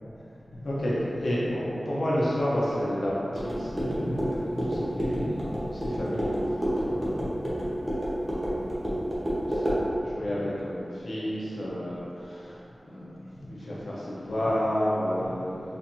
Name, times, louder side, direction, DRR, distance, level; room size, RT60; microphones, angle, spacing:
voice 1, 0.5-8.0 8.3-15.8, equal, 75° left, -7 dB, 0.8 m, -31 dB
sound 1, 3.3-9.8, equal, 35° right, 1.0 m, -29 dB
4.4 x 3.1 x 2.7 m, 2.8 s
wide cardioid pair, 55°, 0 cm